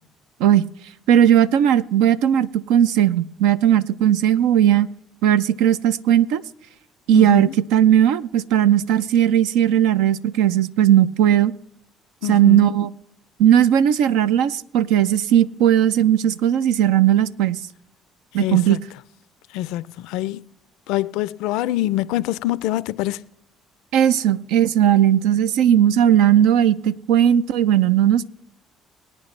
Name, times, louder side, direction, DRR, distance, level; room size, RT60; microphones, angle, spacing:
voice 1, 1.1-4.9 5.2-6.4 7.1-11.5 12.3-12.9 13.4-17.6 18.3-18.8 23.9-28.3, right 10 dB, 80° right, 0.5 m, -17 dB
voice 2, 7.1-7.5 12.2-12.7 18.4-18.8 19.5-20.5 20.9-23.2, left 15 dB, 80° left, 0.4 m, -25 dB
23.0 x 9.0 x 3.2 m
supercardioid pair, 70°, 0 cm